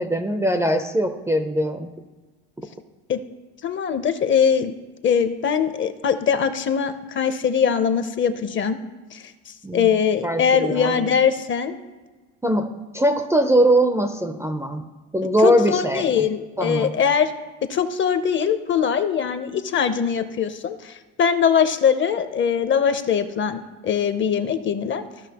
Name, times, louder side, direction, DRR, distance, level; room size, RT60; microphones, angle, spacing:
voice 1, 0.0-2.0 9.6-9.9 10.2-11.1 12.4-14.9 15.1-16.3 16.6-16.9, right 1 dB, 10° right, 7 dB, 0.5 m, -21 dB
voice 2, 3.6-4.7 5.0-8.8 9.1-11.8 15.4-17.3 17.7-25.0, left 7 dB, 35° left, 10 dB, 0.7 m, -22 dB
14.5 x 5.7 x 2.9 m, 1.3 s
cardioid pair, 115°, 33 cm